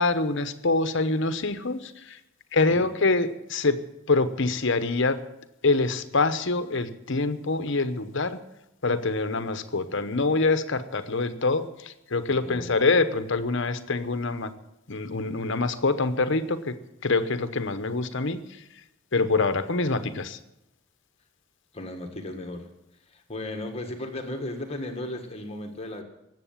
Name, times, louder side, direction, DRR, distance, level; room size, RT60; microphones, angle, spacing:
voice 1, 0.0-2.2 2.5-3.8 4.1-5.2 5.6-8.4 8.8-14.5 14.9-16.7 17.0-18.4 19.1-20.4, left 3 dB, 55° left, 11 dB, 0.9 m, -25 dB
voice 2, 12.3-12.8 21.7-22.7 23.1-26.0, left 1 dB, 25° left, 4 dB, 1.6 m, -35 dB
18.5 x 7.8 x 7.3 m, 0.88 s
head